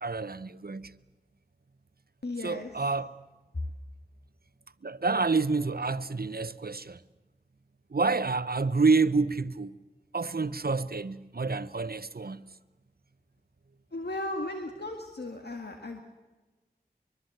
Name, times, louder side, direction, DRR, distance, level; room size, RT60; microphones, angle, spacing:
voice 1, 0.0-0.9 2.4-3.1 4.8-7.0 7.9-9.8 10.1-12.4, right 4 dB, 65° right, 0.9 m, -28 dB
voice 2, 2.2-2.7 13.9-16.0, left 2 dB, 85° left, 1.8 m, -36 dB
24.0 x 23.0 x 7.9 m
wide cardioid pair, 40°, 17 cm